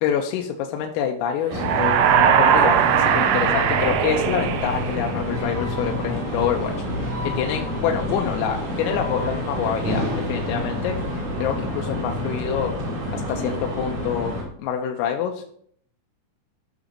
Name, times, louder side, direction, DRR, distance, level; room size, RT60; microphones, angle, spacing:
voice 1, 0.0-12.7 13.1-14.3 14.6-15.4, left 8 dB, 90° left, 2 dB, 3.4 m, -27 dB
sound 1, 1.5-14.4, left 1 dB, 45° right, 3.6 m, -28 dB
sound 2, 1.5-5.4, right 9 dB, 80° right, 3.2 m, -20 dB
14.5 x 6.2 x 2.8 m, 0.63 s
omnidirectional pair, 6.0 m